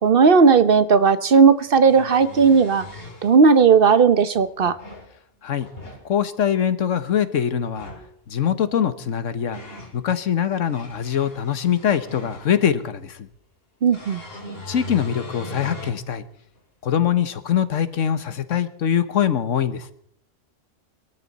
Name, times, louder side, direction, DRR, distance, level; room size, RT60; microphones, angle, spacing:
voice 1, 0.0-2.8 3.2-4.8 13.8-14.2, right 5 dB, 50° right, 12 dB, 0.9 m, -15 dB
sound 1, 0.7-0.8 1.7-3.3 4.3-5.1 5.5-6.0 7.6-8.1 9.0-10.0 10.5-12.7 13.9-16.0 16.6-16.7 18.2-18.3, left 1 dB, 50° left, 3.0 m, -39 dB
voice 2, 6.0-7.9 8.3-9.6 9.9-13.3 14.7-16.2 16.8-19.9, left 9 dB, 85° left, 12 dB, 1.4 m, -23 dB
23.0 x 13.5 x 4.1 m, 0.65 s
omnidirectional pair, 1.3 m